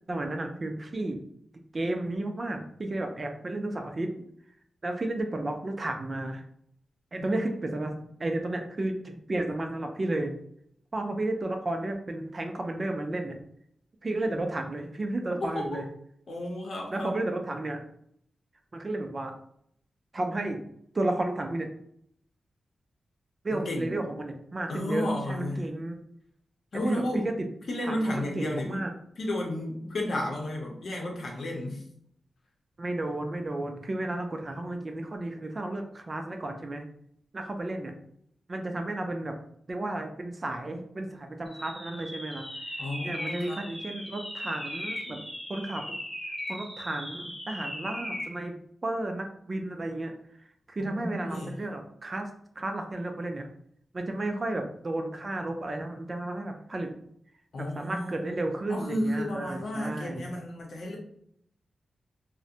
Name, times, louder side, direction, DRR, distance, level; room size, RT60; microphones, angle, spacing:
voice 1, 0.1-1.2 1.7-4.2 4.8-6.4 7.1-10.3 10.9-13.4 14.0-15.8 16.9-17.8 18.7-19.3 20.1-20.6 20.9-21.7 23.4-26.0 26.8-27.3 27.8-28.9 32.8-36.9 37.3-37.9 38.5-39.4 39.7-45.2 45.5-46.0 46.5-50.2 50.7-52.3 52.6-53.4 53.9-57.0 57.6-60.3, right 2 dB, 30° right, 4 dB, 0.3 m, -33 dB
voice 2, 15.4-15.9 16.3-17.2 23.5-24.0 24.7-25.7 26.7-27.3 27.7-28.8 29.2-31.8 42.8-43.6 45.1-45.2 50.8-51.6 57.5-58.4 58.7-61.0, left 1 dB, 65° left, -1 dB, 0.7 m, -32 dB
sound 1, 41.5-48.4, left 1 dB, 10° left, 0.7 m, -38 dB
2.4 x 2.0 x 2.7 m, 0.68 s
wide cardioid pair, 135°, 0 cm